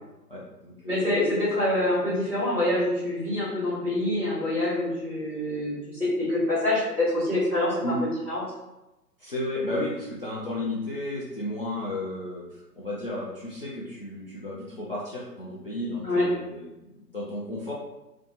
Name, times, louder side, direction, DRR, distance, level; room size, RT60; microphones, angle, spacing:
voice 1, 0.3-1.1 7.8-8.1 9.2-17.7, left 1 dB, 40° left, -7 dB, 0.4 m, -33 dB
voice 2, 0.9-7.8 8.3-8.4 16.0-16.3, left 1 dB, 5° right, -15 dB, 0.7 m, -26 dB
2.7 x 2.2 x 3.9 m, 0.98 s
figure-of-eight pair, 130°, 49 cm